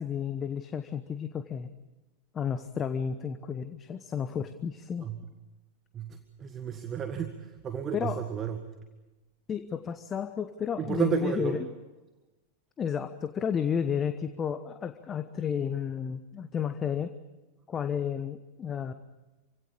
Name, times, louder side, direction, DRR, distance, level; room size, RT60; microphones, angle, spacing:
voice 1, 0.0-1.7 2.3-5.1 7.9-8.2 9.5-11.7 12.8-17.1 17.7-18.9, left 7 dB, 25° left, 10 dB, 1.0 m, -32 dB
voice 2, 5.9-8.6 10.8-11.6, right 8 dB, 25° right, 7 dB, 1.6 m, -32 dB
27.5 x 17.0 x 8.6 m, 1.1 s
figure-of-eight pair, 90°, 0 cm